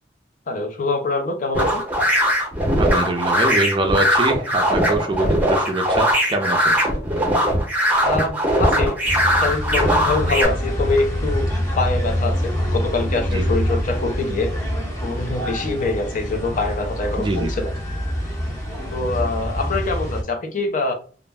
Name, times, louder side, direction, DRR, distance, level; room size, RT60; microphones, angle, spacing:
voice 1, 0.5-1.8 8.1-9.0 9.4-11.5 11.8-14.5 15.0-17.7 18.9-20.9, left 3 dB, 45° left, 0.5 m, -24 dB
sound 1, 1.5-10.4, equal, 10° right, 0.8 m, -20 dB
voice 2, 2.8-6.8 13.3-13.5 17.2-17.5, right 2 dB, 25° right, 0.4 m, -24 dB
sound 2, 9.0-20.2, equal, 20° left, 0.8 m, -25 dB
2.4 x 2.0 x 3.3 m
head